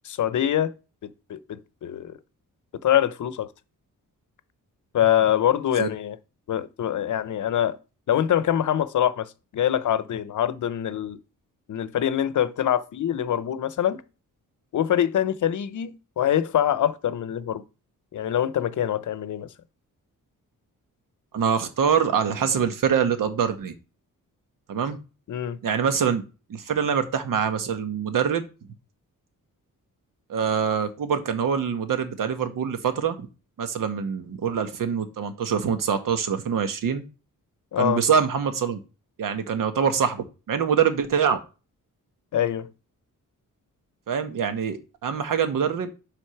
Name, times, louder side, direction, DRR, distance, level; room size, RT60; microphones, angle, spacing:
voice 1, 0.0-0.7 1.0-2.2 2.8-3.5 4.9-6.2 6.5-7.8 8.1-11.2 11.7-14.0 14.7-17.6 18.1-19.5 25.3-25.6 37.7-38.0 42.3-42.7, left 10 dB, 65° left, 0.7 m, -24 dB
voice 2, 21.3-23.7 24.7-25.0 25.6-26.2 26.5-28.5 30.3-33.3 33.6-37.0 37.8-38.8 39.2-41.4 44.1-45.9, right 7 dB, 75° right, 1.3 m, -24 dB
7.9 x 3.6 x 5.8 m
wide cardioid pair, 165°, 33 cm